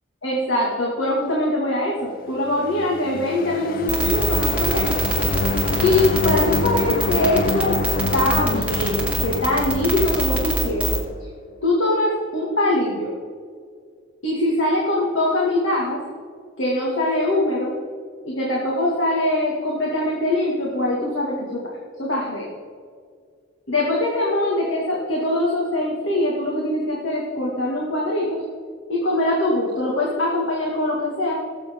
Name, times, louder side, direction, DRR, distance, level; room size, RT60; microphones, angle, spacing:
voice 1, 0.2-5.0 5.8-7.8 8.1-11.0 11.6-13.1 14.2-16.0 16.6-17.7 18.3-21.6 22.0-22.5 23.7-28.4 28.9-31.3, left 1 dB, 85° left, -4 dB, 2.2 m, -22 dB
sound 1, 2.5-11.2, left 3 dB, 45° left, 0.5 m, -27 dB
sound 2, 3.9-11.0, right 2 dB, 5° right, 2.3 m, -23 dB
18.5 x 8.1 x 3.8 m, 2.1 s
head